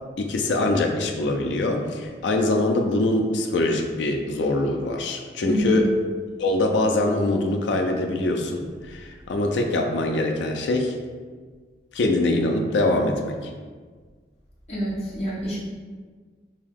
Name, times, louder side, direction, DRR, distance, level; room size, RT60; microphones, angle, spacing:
voice 1, 0.2-5.9 6.4-11.0 11.9-13.4, left 2 dB, 85° left, 3 dB, 0.4 m, -23 dB
voice 2, 5.5-5.8 14.7-15.6, equal, 35° left, -7 dB, 0.6 m, -27 dB
2.8 x 2.7 x 3.5 m, 1.5 s
head